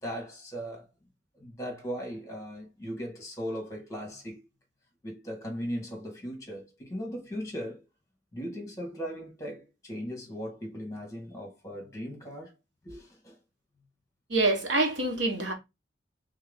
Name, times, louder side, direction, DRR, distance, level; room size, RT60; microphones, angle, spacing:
voice 1, 0.0-0.9 1.3-4.5 5.0-7.9 8.3-12.5 12.8-13.4, equal, 15° left, 1.9 m, -38 dB
voice 2, 14.3-15.5, right 2 dB, 75° right, 1.2 m, -26 dB
3.6 x 3.6 x 3.6 m
head